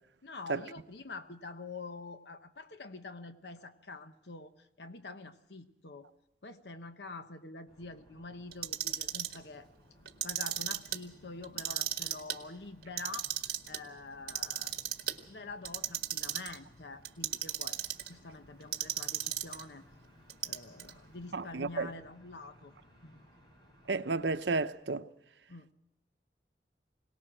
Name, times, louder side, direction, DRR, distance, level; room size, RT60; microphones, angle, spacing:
voice 1, 0.2-6.1 6.4-9.7 10.2-14.8 15.3-17.8 18.1-19.8 20.4-22.7 23.0-23.2 25.5-25.7, left 3 dB, 70° left, 1.0 m, -46 dB
sound 1, 7.7-24.7, left 1 dB, 25° left, 5.4 m, -61 dB
Clock, 8.5-9.4 10.1-11.0 11.4-12.4 12.8-13.8 14.3-15.2 15.6-16.6 17.0-18.1 18.7-19.6 20.3-20.9, right 11 dB, 60° right, 1.6 m, -34 dB
voice 2, 21.3-21.9 23.9-25.1, right 3 dB, 85° right, 0.8 m, -32 dB
22.5 x 18.5 x 6.2 m
head